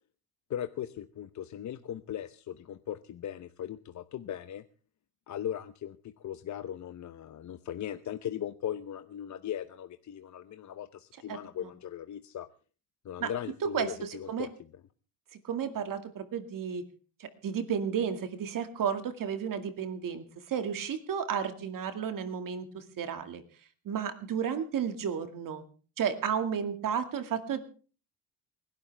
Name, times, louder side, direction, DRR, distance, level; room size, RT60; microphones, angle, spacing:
voice 1, 0.5-4.6 5.3-12.5 13.0-14.7, left 10 dB, 45° left, 10 dB, 0.9 m, -38 dB
voice 2, 13.6-14.5 15.4-16.8 17.2-23.4 23.9-25.6 26.0-27.7, right 7 dB, 55° right, 8 dB, 2.2 m, -32 dB
28.5 x 12.0 x 3.4 m, 0.38 s
cardioid pair, 90°, 39 cm